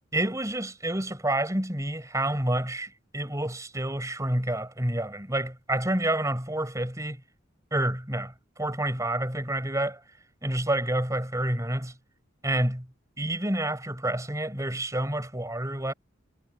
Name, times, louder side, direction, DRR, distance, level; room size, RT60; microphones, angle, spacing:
voice 1, 0.1-7.2 7.7-10.0 10.4-11.9 12.4-12.9 13.2-15.9, right 1 dB, 15° right, 4.7 m, -28 dB
head